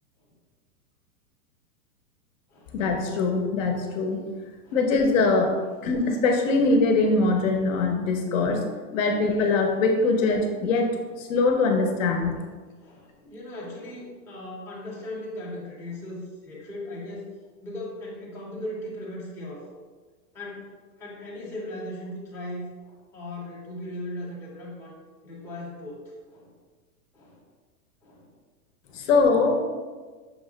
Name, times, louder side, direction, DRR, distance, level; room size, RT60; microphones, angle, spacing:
voice 1, 2.7-4.3 4.7-8.7 8.9-12.3 28.9-29.6, left 3 dB, 55° left, 4 dB, 0.7 m, -22 dB
voice 2, 12.8-17.3 17.6-19.7 20.3-20.7 21.0-24.9 25.2-26.0 26.3-26.5 27.1-27.4 28.0-28.3 28.9-29.1, left 1 dB, 5° left, -7 dB, 0.6 m, -38 dB
6.0 x 2.1 x 3.7 m, 1.4 s
hypercardioid pair, 145°, 47 cm